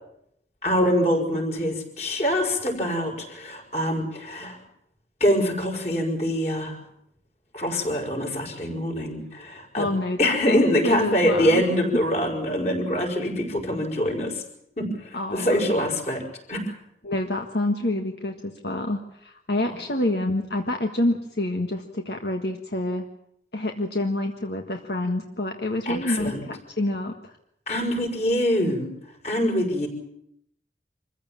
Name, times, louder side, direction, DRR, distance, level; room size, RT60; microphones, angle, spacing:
voice 1, 0.6-4.6 5.2-6.8 7.5-9.9 10.2-14.4 14.8-16.2 16.5-16.8 25.9-26.5 27.7-28.9 29.2-29.9, equal, 40° left, 1 dB, 5.8 m, -24 dB
voice 2, 9.8-11.6 15.1-15.6 17.0-23.1 23.5-27.3, left 1 dB, 70° left, 3 dB, 1.6 m, -27 dB
25.5 x 15.5 x 8.9 m, 0.75 s
head